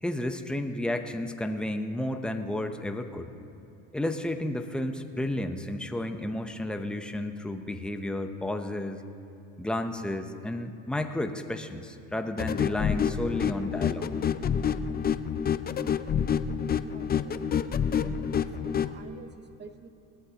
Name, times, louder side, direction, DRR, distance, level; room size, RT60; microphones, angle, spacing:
voice 1, 0.0-3.3 3.9-9.0 9.6-14.1, left 1 dB, ahead, 6 dB, 0.8 m, -32 dB
sound 1, 12.4-18.9, left 8 dB, 25° left, 0.4 m, -28 dB
voice 2, 16.8-17.4 17.9-19.9, right 5 dB, 25° right, 9 dB, 1.0 m, -48 dB
20.0 x 13.5 x 2.9 m, 2.8 s
supercardioid pair, 95°, 38 cm